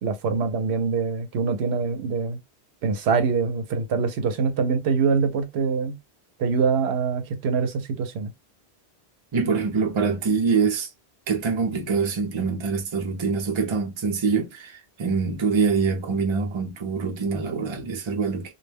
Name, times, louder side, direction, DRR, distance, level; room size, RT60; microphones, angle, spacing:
voice 1, 0.0-2.4 2.8-6.0 6.4-8.3, right 5 dB, 85° right, 0.9 m, -24 dB
voice 2, 9.3-10.9 11.3-18.5, right 5 dB, 35° right, 0.5 m, -24 dB
2.3 x 2.1 x 3.2 m
omnidirectional pair, 1.1 m